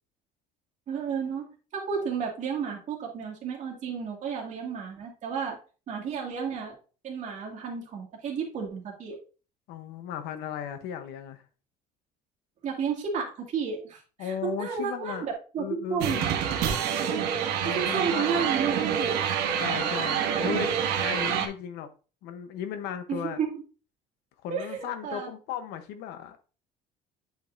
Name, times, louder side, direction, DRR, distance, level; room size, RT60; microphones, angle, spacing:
voice 1, 0.9-1.5 1.7-5.6 5.9-6.8 7.0-9.2 12.6-16.2 16.6-17.2 17.6-19.2 23.1-23.6 24.5-25.3, right 6 dB, 45° right, 2.3 m, -32 dB
voice 2, 9.7-11.4 14.2-15.3 15.6-16.3 17.6-18.5 19.6-20.7 21.0-21.9 22.2-23.4 24.4-26.5, left 8 dB, 85° left, 1.0 m, -36 dB
sound 1, 16.0-21.5, right 8 dB, 75° right, 1.2 m, -27 dB
8.2 x 5.2 x 2.6 m
cardioid pair, 140°, 17 cm